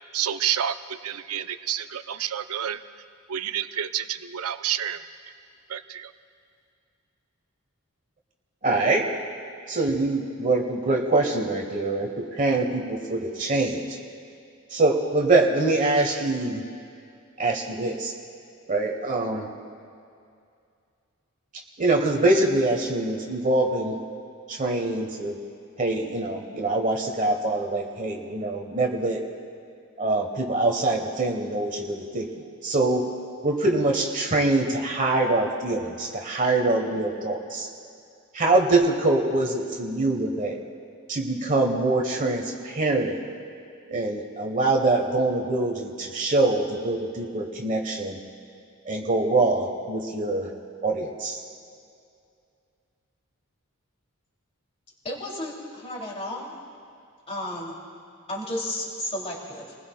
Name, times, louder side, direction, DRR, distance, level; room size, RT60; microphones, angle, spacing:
voice 1, 0.1-0.7 1.0-2.8 3.3-5.0 5.7-5.8, right 10 dB, 85° right, 10 dB, 0.6 m, -28 dB
voice 2, 8.6-9.1 9.7-14.0 14.7-16.6 17.4-18.1 18.7-19.5 21.8-24.0 24.5-25.3 25.8-29.2 30.0-32.3 32.6-33.1 33.4-37.7 38.3-40.6 41.1-43.2 43.9-48.2 48.8-50.5 50.8-51.4, right 2 dB, 35° right, 2 dB, 1.2 m, -24 dB
voice 3, 55.0-56.5 57.3-57.7 58.3-59.8, left 1 dB, 30° left, -3 dB, 2.9 m, -33 dB
29.5 x 20.0 x 2.3 m, 2.4 s
head